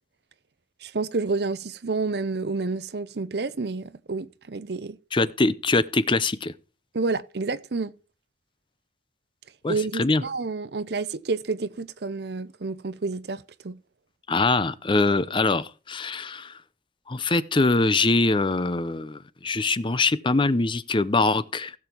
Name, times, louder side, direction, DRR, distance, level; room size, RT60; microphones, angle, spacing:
voice 1, 0.8-5.0 6.9-7.9 9.7-13.8, right 3 dB, 65° right, 0.7 m, -29 dB
voice 2, 5.1-6.5 9.6-10.2 14.3-16.5 17.1-21.7, left 3 dB, 30° left, 0.6 m, -23 dB
16.0 x 7.1 x 4.5 m
head